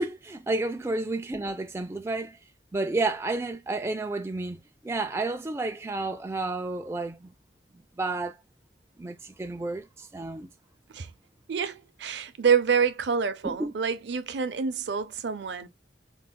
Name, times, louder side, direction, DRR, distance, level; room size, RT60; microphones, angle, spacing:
voice 1, 0.0-2.4 2.7-7.3 8.0-8.4 9.0-10.5 13.4-13.7, right 2 dB, 15° right, 0.3 m, -31 dB
voice 2, 11.5-15.7, right 6 dB, 70° right, 0.5 m, -27 dB
4.5 x 2.1 x 2.2 m
head